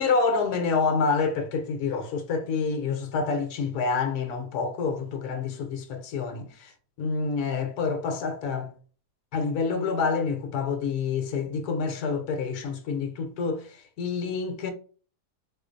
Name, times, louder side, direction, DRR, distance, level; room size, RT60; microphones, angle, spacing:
voice 1, 0.0-6.7 7.0-8.7 9.3-14.7, left 5 dB, 70° left, 1.2 m, -27 dB
4.2 x 2.5 x 2.5 m
omnidirectional pair, 1.7 m